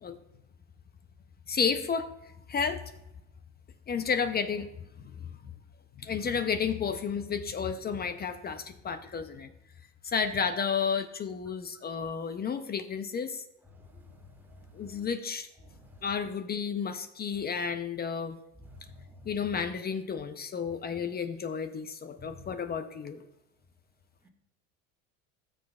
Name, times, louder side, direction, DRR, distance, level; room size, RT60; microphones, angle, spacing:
voice 1, 1.5-2.1 2.5-2.8 3.9-4.7 5.2-5.3 6.0-9.5 10.0-13.4 14.7-15.5 16.0-18.4 19.3-23.2, left 6 dB, 25° left, 0.6 m, -31 dB
voice 2, 14.5-15.0 15.6-16.0 18.6-19.3 22.2-22.5, left 2 dB, 5° right, 1.8 m, -51 dB
14.5 x 6.5 x 2.3 m
supercardioid pair, 100°, 42 cm